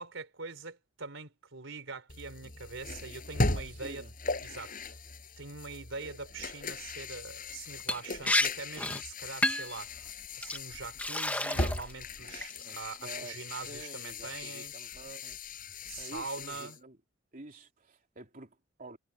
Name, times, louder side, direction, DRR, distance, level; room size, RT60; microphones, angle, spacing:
voice 1, 0.0-4.1 4.4-5.0 5.4-14.7 15.8-16.8, right 4 dB, 75° right, 3.8 m, -43 dB
sound 1, 2.1-16.8, left 2 dB, 45° left, 6.6 m, -38 dB
voice 2, 3.5-4.1 12.6-15.4 16.0-17.0 17.3-19.0, right 2 dB, 45° right, 3.2 m, -49 dB
Liquid, 7.9-8.0 8.3-8.5 8.8-9.0 9.4-9.8 10.4-10.6 11.0-11.9 12.3-12.7, left 1 dB, 10° left, 1.1 m, -30 dB
head